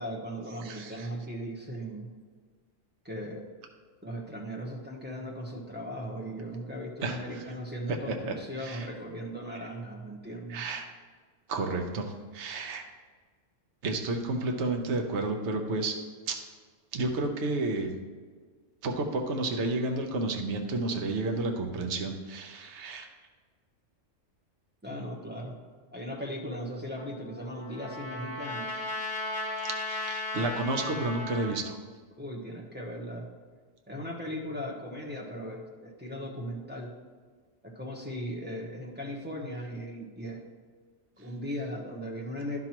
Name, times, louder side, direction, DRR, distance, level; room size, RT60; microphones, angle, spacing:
voice 1, 0.0-2.1 3.0-3.5 4.0-10.6 24.8-25.5 25.9-28.8 32.2-33.3 33.9-36.9 37.6-40.4 41.2-42.6, equal, 10° right, -2 dB, 1.0 m, -38 dB
voice 2, 0.6-1.1 7.0-7.2 8.1-8.3 8.6-8.9 10.5-10.9 11.5-12.8 13.8-15.9 16.3-16.4 16.9-17.9 18.8-23.1 29.6-31.8, right 2 dB, 65° right, 3 dB, 1.1 m, -31 dB
Trumpet, 27.0-31.6, left 2 dB, 45° left, 1.4 m, -36 dB
11.0 x 6.0 x 3.0 m, 1.5 s
omnidirectional pair, 1.3 m